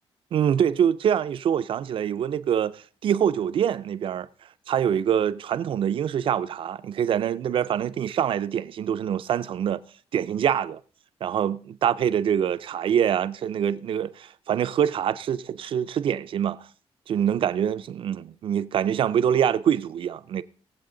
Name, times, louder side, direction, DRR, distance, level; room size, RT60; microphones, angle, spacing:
voice 1, 0.3-4.3 4.7-9.8 10.1-10.8 11.2-16.6 17.1-20.4, right 9 dB, 55° right, 0.5 m, -25 dB
20.5 x 7.7 x 3.8 m
wide cardioid pair, 170°, 11 cm